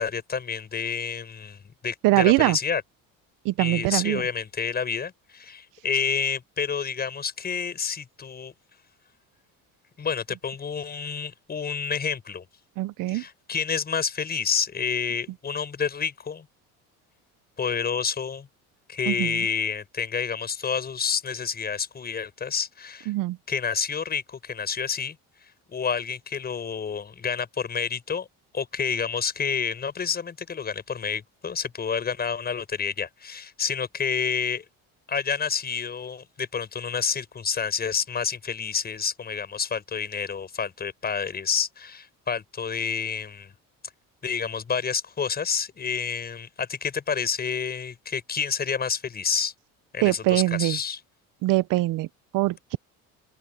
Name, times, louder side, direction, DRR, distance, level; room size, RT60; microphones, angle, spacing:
voice 1, 0.0-2.8 3.6-8.5 10.0-12.4 13.1-16.5 17.6-18.5 18.9-23.1 23.5-25.2 25.7-28.3 28.5-34.6 35.1-43.5 44.2-49.5 49.9-51.0, left 6 dB, 30° left, 6.8 m, -29 dB
voice 2, 2.0-2.6 3.4-4.2 12.8-13.2 19.1-19.3 23.1-23.4 50.0-50.8 51.4-52.1 52.3-52.8, right 18 dB, 75° right, 0.8 m, -22 dB
open air
cardioid pair, 140°, 33 cm